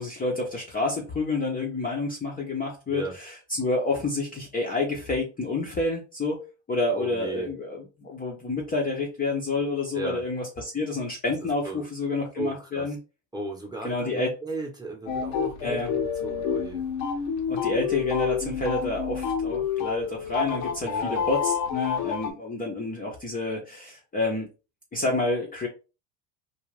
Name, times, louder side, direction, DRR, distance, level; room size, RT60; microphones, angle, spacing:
voice 1, 0.0-13.0 13.8-14.4 15.6-15.9 17.5-24.5 24.9-25.7, left 2 dB, 20° left, -1 dB, 0.6 m, -29 dB
voice 2, 7.0-7.5 9.9-10.2 11.4-11.9 12.4-12.9 13.3-16.8 20.8-21.3, right 2 dB, 10° right, 1 dB, 0.8 m, -36 dB
sound 1, 15.1-22.3, left 7 dB, 85° left, 0.8 m, -28 dB
2.4 x 2.2 x 3.1 m, 0.30 s
supercardioid pair, 115°, 47 cm